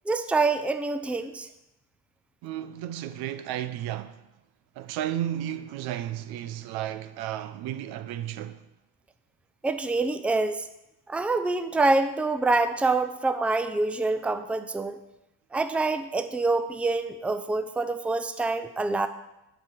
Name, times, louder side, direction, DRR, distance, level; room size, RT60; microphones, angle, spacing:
voice 1, 0.1-1.5 9.6-10.7 11.1-15.0 15.5-19.1, right 3 dB, 5° right, 0.5 m, -26 dB
voice 2, 2.4-4.2 4.8-8.6, right 11 dB, 70° right, 0.8 m, -33 dB
10.0 x 5.1 x 6.3 m
supercardioid pair, 95°, 39 cm